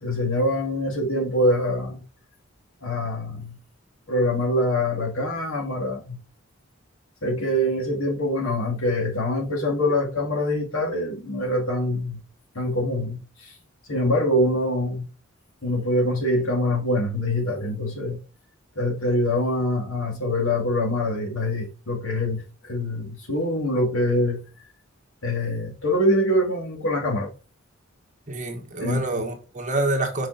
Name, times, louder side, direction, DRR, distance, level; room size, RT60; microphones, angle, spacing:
voice 1, 0.0-2.0 2.8-3.6 4.1-6.2 7.2-12.2 12.5-13.2 13.9-15.1 15.6-18.2 18.8-24.4 25.2-27.3 28.8-29.0, left 1 dB, 80° left, 2.2 m, -24 dB
voice 2, 28.3-30.3, right 2 dB, 35° right, 1.5 m, -27 dB
5.6 x 5.2 x 4.0 m
head